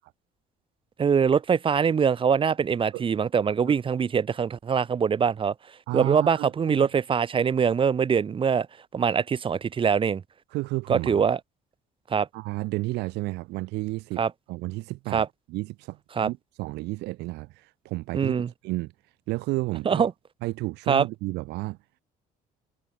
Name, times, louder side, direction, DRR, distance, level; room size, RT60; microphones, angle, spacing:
voice 1, 1.0-5.5 5.9-8.7 8.9-10.2 10.9-11.4 12.1-12.3 14.2-14.3 15.1-15.3 16.2-16.3 18.1-18.5 19.9-20.1 20.9-21.0, right 6 dB, 30° right, 0.8 m, -23 dB
voice 2, 5.9-6.9 10.5-11.2 12.3-14.2 14.5-18.9 19.3-20.1 20.4-21.8, right 21 dB, 85° right, 0.6 m, -32 dB
cardioid pair, 110°, 17 cm